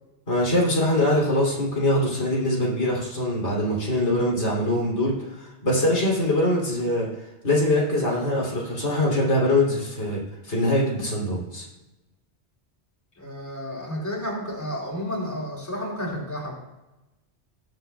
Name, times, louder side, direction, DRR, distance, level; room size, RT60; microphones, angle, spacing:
voice 1, 0.3-7.1 7.4-11.7, left 1 dB, 85° left, -4 dB, 3.3 m, -23 dB
voice 2, 13.2-16.5, equal, 15° left, -3 dB, 3.0 m, -31 dB
19.0 x 7.7 x 2.2 m, 1.0 s
omnidirectional pair, 1.1 m